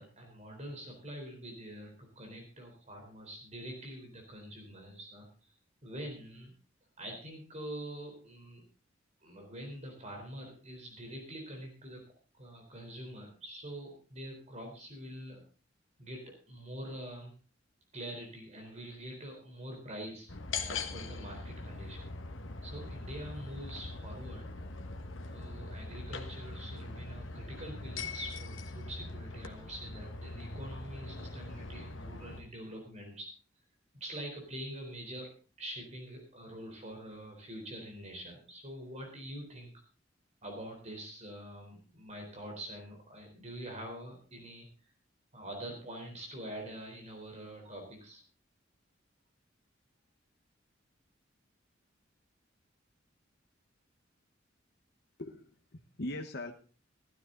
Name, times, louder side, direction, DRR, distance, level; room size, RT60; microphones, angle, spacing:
voice 1, 0.0-5.5 5.8-6.5 7.0-8.6 9.2-12.0 12.4-15.4 16.0-17.3 17.9-20.3 20.6-22.1 22.6-24.5 25.3-33.3 34.0-35.3 35.6-39.7 40.4-44.9 45.3-48.2, right 1 dB, 35° right, 2 dB, 3.9 m, -45 dB
sound 1, 20.3-32.4, left 3 dB, 85° left, 1.4 m, -42 dB
voice 2, 55.2-56.5, left 1 dB, 60° left, 4 dB, 1.3 m, -40 dB
15.0 x 12.5 x 3.9 m, 0.37 s
head